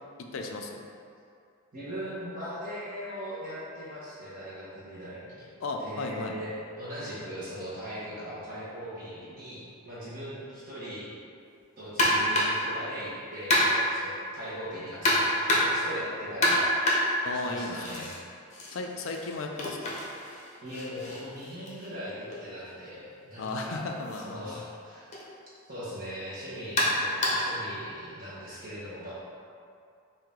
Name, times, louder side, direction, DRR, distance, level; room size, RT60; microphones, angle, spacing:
voice 1, 0.2-0.8 5.6-6.4 17.2-18.1 18.7-20.0 23.4-24.6, left 3 dB, 65° left, 2 dB, 0.4 m, -35 dB
voice 2, 1.7-5.5 5.8-6.5 6.8-11.1 11.8-16.7 17.4-18.1 20.6-23.9 24.2-25.2 25.7-29.1, equal, 40° right, -9 dB, 1.2 m, -39 dB
sound 1, 12.0-12.7 13.5-14.0 15.0-15.9 16.4-18.2 18.5-22.4 23.5-23.6 24.1-24.2 25.1-25.3 26.8-27.6, equal, 35° left, 0.7 m, -27 dB
4.7 x 2.7 x 3.6 m, 2.5 s
head